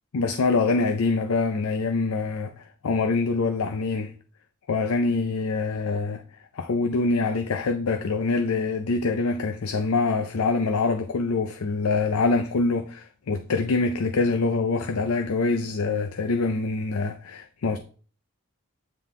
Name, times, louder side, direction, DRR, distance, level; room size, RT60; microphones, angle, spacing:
voice 1, 0.1-4.1 4.7-6.2 6.5-17.8, left 3 dB, 85° left, 0.5 m, -25 dB
9.1 x 3.8 x 3.6 m
head